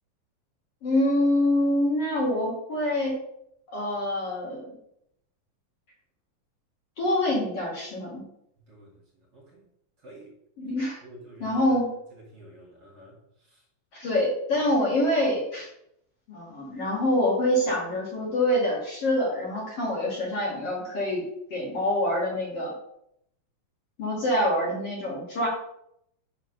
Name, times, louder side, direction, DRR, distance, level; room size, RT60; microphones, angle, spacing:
voice 1, 0.8-3.1 3.7-4.6 7.0-8.2 10.6-11.0 11.4-11.9 13.9-15.7 16.3-21.2 21.5-22.7 24.0-25.5, left 1 dB, 50° left, -4 dB, 2.6 m, -25 dB
voice 2, 11.0-11.8 12.1-13.1 13.5-13.6, right 1 dB, 45° right, -4 dB, 2.6 m, -48 dB
7.1 x 3.9 x 6.4 m, 0.75 s
omnidirectional pair, 4.1 m